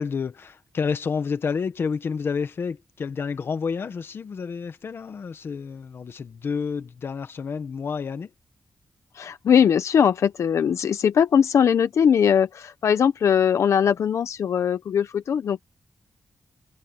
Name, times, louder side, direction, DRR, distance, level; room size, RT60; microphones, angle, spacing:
voice 1, 0.0-8.3, left 5 dB, 55° left, 1.3 m, -29 dB
voice 2, 9.1-15.6, left 8 dB, 85° left, 0.7 m, -20 dB
wide cardioid pair, 175°, 5 cm